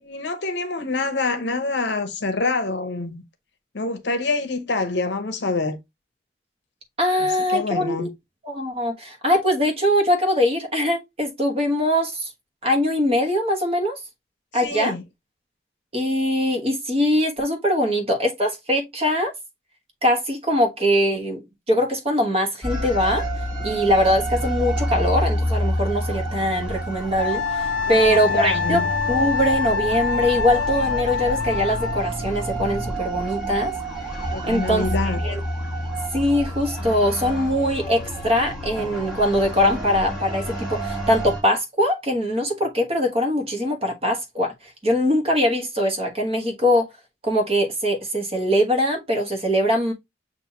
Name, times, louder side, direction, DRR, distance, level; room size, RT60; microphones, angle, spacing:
voice 1, 0.0-3.2 3.7-5.8 7.2-8.1 14.6-15.0 27.9-28.9 34.3-35.2, left 3 dB, 70° left, 0.9 m, -26 dB
voice 2, 7.0-8.1 8.4-12.3 12.6-14.0 14.5-14.9 15.9-19.3 20.0-23.2 23.6-33.7 34.4-35.4 36.1-46.9 47.2-49.9, equal, 30° right, 1.1 m, -22 dB
sound 1, 22.6-41.4, right 1 dB, 5° right, 1.5 m, -28 dB
Wind instrument woodwind instrument, 27.2-32.0, left 5 dB, 85° left, 0.4 m, -25 dB
7.2 x 2.5 x 2.8 m
head